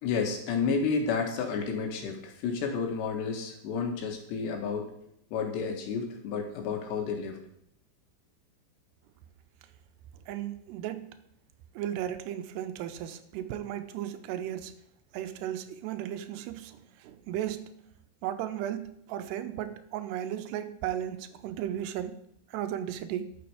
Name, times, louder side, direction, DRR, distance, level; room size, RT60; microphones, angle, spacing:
voice 1, 0.0-4.9 5.3-7.4, left 5 dB, 90° left, 3.8 m, -31 dB
voice 2, 10.3-11.2 11.8-14.8 15.1-17.8 18.2-23.4, right 11 dB, 85° right, 2.8 m, -35 dB
13.0 x 7.0 x 4.9 m
omnidirectional pair, 4.8 m